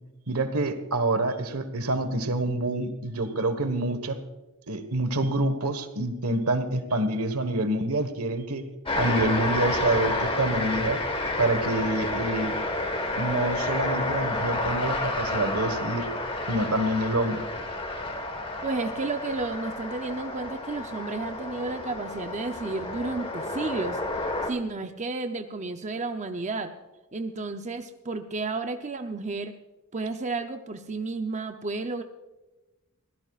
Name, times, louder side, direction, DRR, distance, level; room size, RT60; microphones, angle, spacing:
voice 1, 0.3-4.2 4.7-8.6 9.0-11.0 11.4-12.6 13.2-16.1 16.5-17.4, right 2 dB, 85° right, 10 dB, 1.4 m, -27 dB
sound 1, 8.8-24.5, left 2 dB, 25° left, 1.5 m, -30 dB
voice 2, 18.6-24.0 24.5-26.7 27.1-29.6 29.9-32.0, right 3 dB, 35° right, 6 dB, 0.7 m, -32 dB
23.5 x 16.5 x 2.4 m, 1.1 s
head